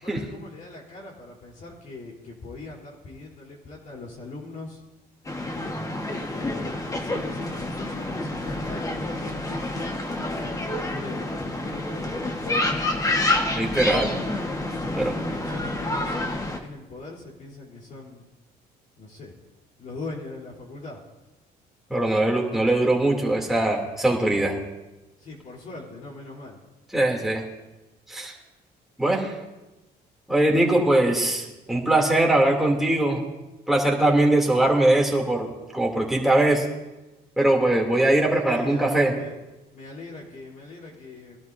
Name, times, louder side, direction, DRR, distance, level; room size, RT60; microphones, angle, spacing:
voice 1, 0.0-4.7 5.5-5.7 6.1-9.8 10.2-12.7 14.1-14.3 14.7-18.2 19.0-19.3 19.8-21.0 25.3-26.6 38.4-39.4 39.7-41.4, left 3 dB, 50° left, -3 dB, 3.6 m, -41 dB
sound 1, 5.3-16.6, left 2 dB, 20° left, 1.4 m, -28 dB
voice 2, 13.5-14.2 14.9-15.2 21.9-24.6 26.9-27.4 28.1-28.3 29.0-29.3 30.3-33.2 33.7-36.7 37.4-39.1, right 1 dB, ahead, -2 dB, 2.7 m, -21 dB
22.0 x 12.0 x 2.7 m, 1.0 s
cardioid pair, 110°, 17 cm